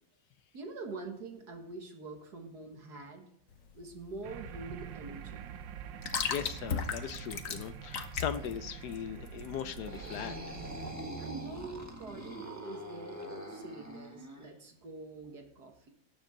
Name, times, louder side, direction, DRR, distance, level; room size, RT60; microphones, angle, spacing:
voice 1, 0.5-3.3 3.7-5.4 11.2-15.9, right 3 dB, 60° right, 3 dB, 2.2 m, -45 dB
sound 1, 3.5-10.2, left 6 dB, 55° left, 1.2 m, -38 dB
sound 2, 4.2-11.0, right 10 dB, 85° right, 1.4 m, -46 dB
voice 2, 6.3-10.4, left 9 dB, 70° left, 12 dB, 1.1 m, -39 dB
sound 3, 9.7-14.5, right 1 dB, 10° right, 1.3 m, -43 dB
18.5 x 7.3 x 3.8 m, 0.68 s
omnidirectional pair, 1.9 m